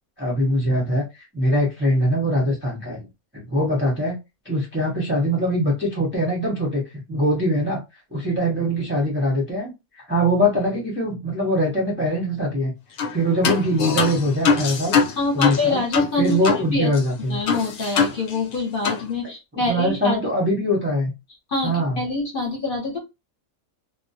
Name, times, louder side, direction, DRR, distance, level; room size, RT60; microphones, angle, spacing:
voice 1, 0.2-3.1 3.3-4.1 4.4-6.8 7.1-7.8 8.1-9.7 10.0-12.7 13.1-15.0 15.3-15.8 16.2-17.4 19.5-21.1 21.6-22.0, equal, 15° right, -3 dB, 0.5 m, -22 dB
sound 1, 13.0-13.2 13.4-16.7 16.9-17.0 17.5-18.6 18.8-19.0, left 5 dB, 70° left, 0.9 m, -23 dB
voice 2, 15.2-16.4 16.7-16.9 17.2-20.2 21.5-23.0, left 3 dB, 45° left, -1 dB, 0.9 m, -25 dB
2.3 x 2.1 x 2.6 m, 0.23 s
omnidirectional pair, 1.5 m